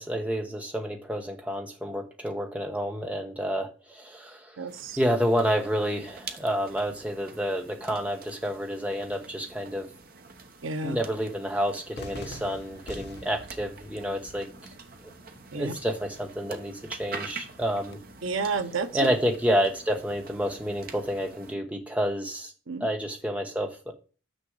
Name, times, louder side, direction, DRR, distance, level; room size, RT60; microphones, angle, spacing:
voice 1, 0.0-4.6 5.0-9.9 10.8-14.5 15.5-18.0 18.9-22.5 22.8-23.9, equal, 5° right, 3 dB, 1.0 m, -29 dB
voice 2, 4.6-5.0 10.6-11.0 15.5-15.7 18.2-19.0 22.7-22.9, right 4 dB, 85° right, 10 dB, 0.8 m, -31 dB
sound 1, 4.7-21.5, right 4 dB, 45° right, 1.1 m, -46 dB
Cheering / Fireworks, 11.9-17.9, left 1 dB, 55° left, 1.2 m, -47 dB
6.4 x 6.0 x 4.8 m, 0.35 s
head